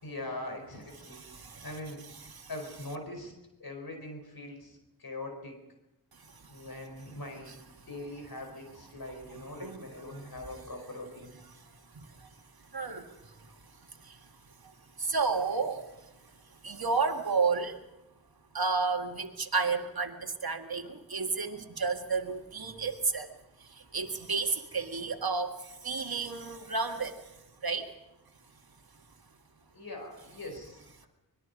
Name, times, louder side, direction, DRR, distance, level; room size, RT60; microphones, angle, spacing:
voice 1, 0.0-1.2 1.6-2.0 2.5-3.3 3.6-5.6 6.5-11.4 29.7-31.1, left 1 dB, 70° left, 3 dB, 4.7 m, -42 dB
voice 2, 1.0-1.7 2.2-2.5 6.1-6.7 7.5-7.9 9.6-9.8 10.1-10.3 11.5-11.6 11.9-12.3 12.7-13.6 13.9-14.3 14.6-14.7 15.0-16.1 16.6-17.8 18.5-23.3 23.6-27.9, right 4 dB, 75° right, 5 dB, 1.9 m, -32 dB
25.0 x 21.0 x 5.3 m, 0.94 s
wide cardioid pair, 45°, 37 cm